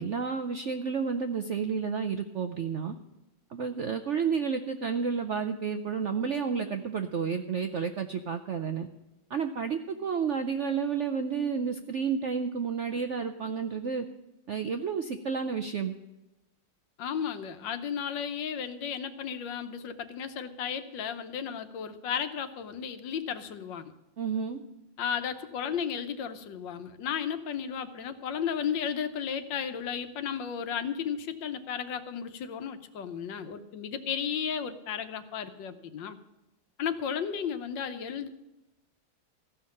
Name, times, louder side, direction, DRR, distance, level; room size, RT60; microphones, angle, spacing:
voice 1, 0.0-2.9 3.5-8.9 9.3-14.1 14.5-15.9 24.2-24.6, right 6 dB, 65° right, 7 dB, 0.7 m, -31 dB
voice 2, 17.0-23.9 25.0-36.2 36.8-38.3, left 7 dB, 75° left, 10 dB, 1.6 m, -34 dB
15.0 x 5.9 x 9.6 m, 0.98 s
omnidirectional pair, 2.0 m